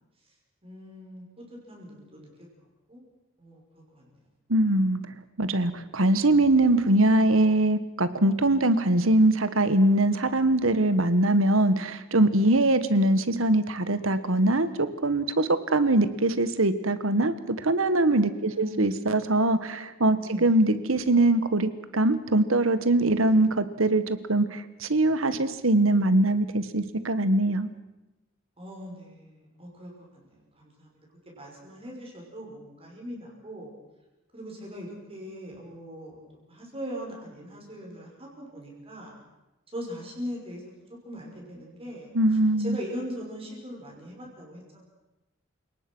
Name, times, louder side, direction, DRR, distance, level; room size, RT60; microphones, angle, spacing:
voice 1, 0.6-2.3 2.6-3.0 3.4-4.1 12.3-12.5 18.4-19.1 20.2-20.6 23.1-23.4 28.6-31.0 31.3-33.7 34.3-36.2 36.5-39.1 39.7-40.7 41.0-42.1 42.6-44.8, equal, 30° right, -1 dB, 5.8 m, -40 dB
voice 2, 4.5-5.0 5.4-27.7 42.1-42.8, right 2 dB, 75° right, 12 dB, 1.6 m, -22 dB
29.0 x 18.5 x 6.3 m, 0.99 s
head